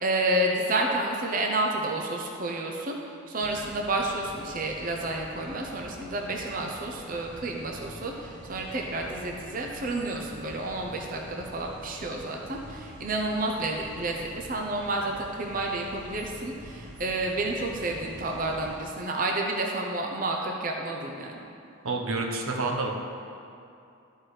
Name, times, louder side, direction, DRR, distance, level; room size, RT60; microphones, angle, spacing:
voice 1, 0.0-2.9 3.3-21.4, right 2 dB, 40° right, 1 dB, 0.7 m, -30 dB
sound 1, 3.4-18.8, right 1 dB, 55° right, 1.2 m, -46 dB
voice 2, 21.8-22.9, right 3 dB, 90° right, 1 dB, 1.0 m, -28 dB
12.5 x 4.6 x 4.9 m, 2.6 s
head